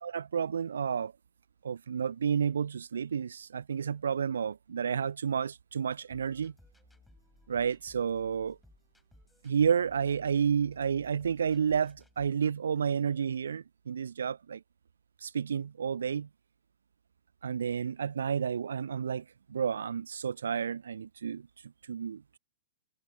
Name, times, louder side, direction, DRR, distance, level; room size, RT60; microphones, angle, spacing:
voice 1, 0.0-1.1 1.6-6.5 7.5-8.6 9.4-14.6 15.2-16.3 17.4-22.4, right 7 dB, 65° right, 0.5 m, -31 dB
sound 1, 5.8-12.3, left 2 dB, 5° left, 5.0 m, -61 dB
figure-of-eight pair, 105°, 0 cm